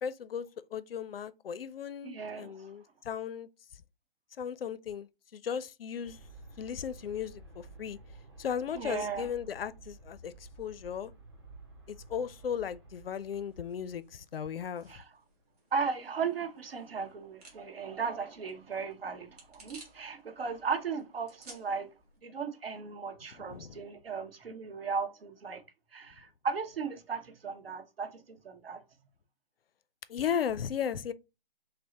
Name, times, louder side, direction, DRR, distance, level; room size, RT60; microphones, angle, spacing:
voice 1, 0.0-3.8 4.4-6.2 6.6-8.0 8.4-11.1 11.9-15.0 23.3-23.8 30.1-31.1, left 8 dB, 80° left, 0.5 m, -36 dB
voice 2, 2.0-2.7 8.7-9.3 14.9-15.0 15.7-21.9 22.2-25.6 25.9-28.8, right 5 dB, 80° right, 0.9 m, -36 dB
Aircraft, 6.0-14.4, right 2 dB, 25° right, 0.7 m, -52 dB
sound 1, 13.0-22.2, right 3 dB, 40° right, 1.6 m, -58 dB
5.3 x 2.1 x 2.8 m
hypercardioid pair, 180°, 29 cm